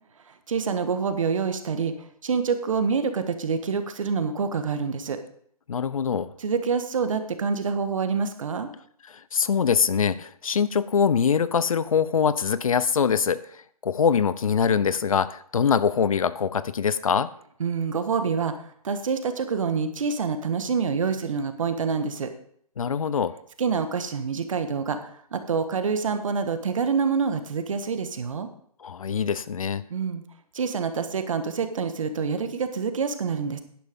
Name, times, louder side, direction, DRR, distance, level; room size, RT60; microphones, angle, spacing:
voice 1, 0.3-1.9 2.2-5.2 6.4-8.7 17.6-18.5 18.8-22.3 23.6-28.5 29.9-30.2 30.5-33.6, right 5 dB, 55° right, 9 dB, 1.5 m, -26 dB
voice 2, 5.7-6.3 9.3-13.4 13.8-17.3 22.8-23.3 28.8-29.8, left 7 dB, 60° left, 16 dB, 0.7 m, -23 dB
11.5 x 10.5 x 3.7 m, 0.64 s
figure-of-eight pair, 140°, 20 cm